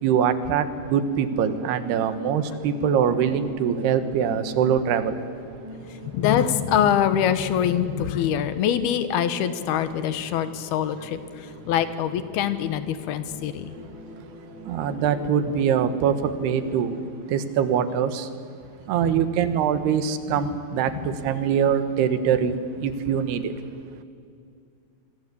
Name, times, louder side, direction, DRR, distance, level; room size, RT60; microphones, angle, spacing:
voice 1, 0.0-5.2 14.7-17.0 17.3-18.3 18.9-23.5, right 8 dB, 90° right, 11 dB, 3.4 m, -23 dB
sound 1, 0.8-17.1, equal, 30° right, 5.0 m, -43 dB
voice 2, 5.9-13.7, left 9 dB, 80° left, 12 dB, 3.1 m, -24 dB
26.5 x 22.5 x 8.5 m, 2.3 s
omnidirectional pair, 4.5 m